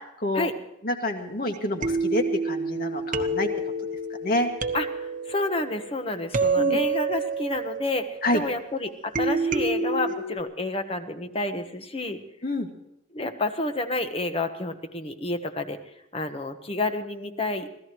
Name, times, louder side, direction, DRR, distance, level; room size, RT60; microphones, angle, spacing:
voice 1, 0.8-3.5 4.2-4.5 6.6-6.8 8.2-8.4 12.4-12.7, left 1 dB, 50° left, 4 dB, 2.1 m, -27 dB
sound 1, 1.5-1.6 1.8-8.6 9.1-10.4, right 3 dB, 45° right, 1.1 m, -28 dB
voice 2, 4.7-12.2 13.1-15.8 16.1-17.7, left 2 dB, 30° left, 7 dB, 1.3 m, -29 dB
25.5 x 16.5 x 3.1 m, 0.85 s
head